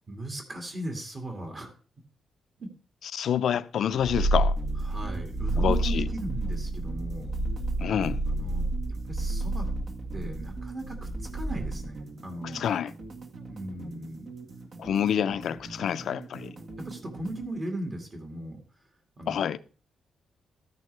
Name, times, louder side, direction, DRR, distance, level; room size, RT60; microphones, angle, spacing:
voice 1, 0.1-1.8 2.6-2.7 4.8-7.3 8.4-9.7 10.1-12.6 13.5-14.3 16.8-18.6 19.2-19.4, right 1 dB, 35° right, 2.3 m, -38 dB
voice 2, 3.1-4.6 5.6-6.1 7.8-8.2 12.5-12.9 14.8-16.5 19.3-19.6, left 9 dB, 70° left, 0.6 m, -27 dB
Purr, 4.0-12.0, right 2 dB, 70° right, 7.5 m, -30 dB
sound 1, 4.6-17.5, right 3 dB, 50° right, 1.8 m, -44 dB
13.5 x 9.6 x 3.4 m
wide cardioid pair, 145°, 0 cm